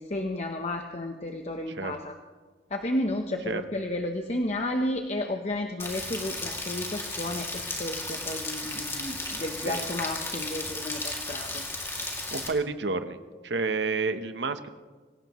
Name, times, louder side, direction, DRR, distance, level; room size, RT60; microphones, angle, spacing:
voice 1, 0.0-2.1 2.7-11.6, left 1 dB, 40° left, 3 dB, 1.0 m, -32 dB
Rain, 5.8-12.5, left 2 dB, 15° left, 2.5 m, -34 dB
voice 2, 12.3-13.2 13.4-14.7, right 4 dB, 80° right, 10 dB, 1.0 m, -30 dB
26.0 x 17.0 x 3.1 m, 1.5 s
head